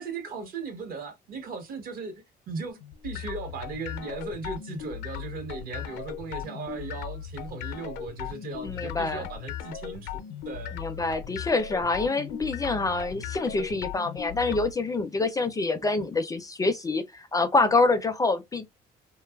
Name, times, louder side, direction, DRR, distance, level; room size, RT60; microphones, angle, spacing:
voice 1, 0.0-10.8, right 4 dB, 60° right, 0.9 m, -37 dB
sound 1, 2.7-14.7, left 9 dB, 85° left, 0.5 m, -38 dB
voice 2, 8.6-9.3 10.7-18.6, left 3 dB, 20° left, 0.4 m, -26 dB
2.8 x 2.3 x 2.2 m
cardioid pair, 110°, 17 cm